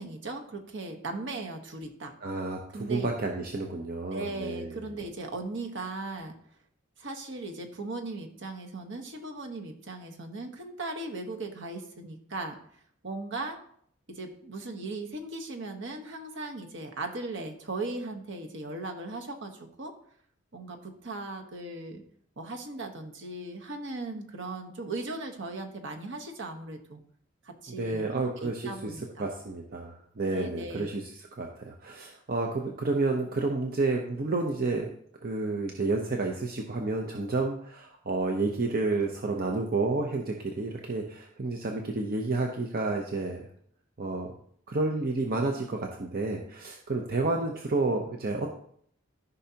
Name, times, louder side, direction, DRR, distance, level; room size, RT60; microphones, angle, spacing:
voice 1, 0.0-2.1 2.7-3.1 4.1-6.4 7.0-12.6 13.0-13.6 14.1-19.9 20.5-22.0 22.4-27.0 27.4-29.3 30.3-31.0, right 2 dB, 65° right, 4 dB, 1.2 m, -38 dB
voice 2, 2.2-4.9 27.7-31.0 31.4-34.9 35.2-43.5 44.0-44.3 44.7-48.5, right 3 dB, 45° right, 2 dB, 0.8 m, -30 dB
14.0 x 5.5 x 2.9 m, 0.65 s
head